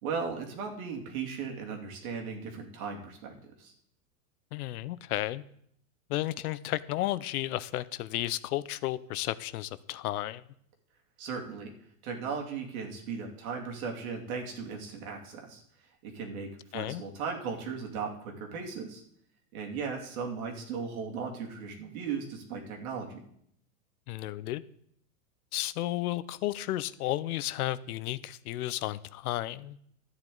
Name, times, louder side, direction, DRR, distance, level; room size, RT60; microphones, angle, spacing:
voice 1, 0.0-3.7 11.2-11.7 12.0-15.6 16.0-19.0 19.5-23.2, right 5 dB, 65° right, 1 dB, 2.7 m, -37 dB
voice 2, 4.5-5.4 6.1-10.4 16.7-17.0 24.1-24.6 25.5-29.8, left 15 dB, 70° left, 17 dB, 0.7 m, -33 dB
13.0 x 9.1 x 3.9 m, 0.69 s
supercardioid pair, 140°, 46 cm